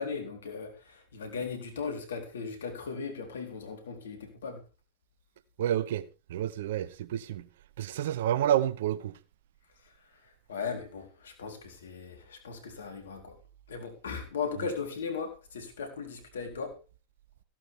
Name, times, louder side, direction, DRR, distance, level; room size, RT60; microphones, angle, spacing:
voice 1, 0.0-4.6 10.2-13.4 13.7-16.8, left 5 dB, 80° left, 4.1 m, -37 dB
voice 2, 5.6-6.0 6.3-7.5 7.8-9.1, right 11 dB, 70° right, 0.9 m, -29 dB
16.5 x 11.5 x 3.7 m
hypercardioid pair, 95°, 0 cm